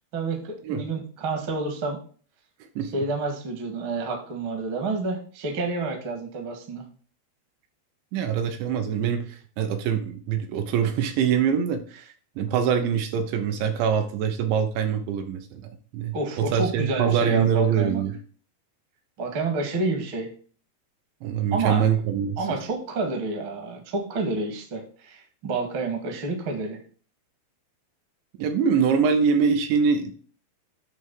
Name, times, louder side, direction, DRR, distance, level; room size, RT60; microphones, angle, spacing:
voice 1, 0.1-2.0 2.9-6.8 16.1-18.0 19.2-20.3 21.5-22.0 22.4-26.8, right 3 dB, 45° right, 3 dB, 1.6 m, -29 dB
voice 2, 2.8-3.1 8.1-15.6 15.9-18.1 21.2-22.6 28.4-30.1, right 7 dB, 75° right, 6 dB, 3.1 m, -24 dB
9.6 x 3.5 x 6.9 m, 0.42 s
omnidirectional pair, 5.5 m